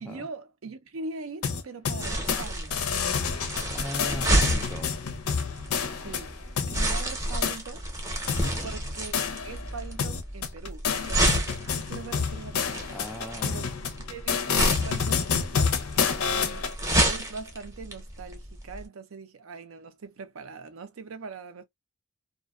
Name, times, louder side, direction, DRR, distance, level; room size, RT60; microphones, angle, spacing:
voice 1, 0.0-3.1 6.0-8.2 8.6-13.6 14.1-15.8 16.2-16.7 17.0-21.6, right 4 dB, 70° right, 0.5 m, -42 dB
sound 1, 1.4-2.4 2.7-6.8 7.4-7.6 8.3-9.7 10.0-16.7, left 6 dB, 85° left, 0.5 m, -29 dB
Bubble Wrap Crunch, 2.0-18.8, right 1 dB, 15° right, 0.7 m, -30 dB
voice 2, 3.7-4.9 8.4-8.8 12.9-13.6, left 1 dB, ahead, 0.3 m, -38 dB
2.5 x 2.1 x 2.3 m
head